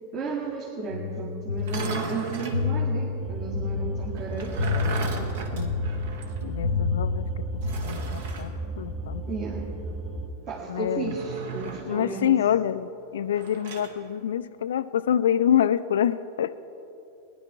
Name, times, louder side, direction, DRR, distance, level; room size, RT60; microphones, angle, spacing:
voice 1, 0.1-4.7 9.3-9.7 10.4-12.3, right 4 dB, 35° right, -3 dB, 1.8 m, -33 dB
sound 1, 0.9-7.7, left 4 dB, 85° right, 2.4 m, -29 dB
sound 2, 1.6-2.6 4.2-6.4 6.7-6.8 7.6-8.5 11.0-12.0 13.3-14.0, right 5 dB, 55° right, 1.3 m, -36 dB
sound 3, 3.2-10.3, right 2 dB, 20° right, 2.0 m, -35 dB
voice 2, 5.2-5.8 6.4-7.5 7.8-9.2 10.7-11.1 11.9-16.6, left 10 dB, 60° left, 12 dB, 0.3 m, -26 dB
19.0 x 11.0 x 4.6 m, 3.0 s
figure-of-eight pair, 90°, 0 cm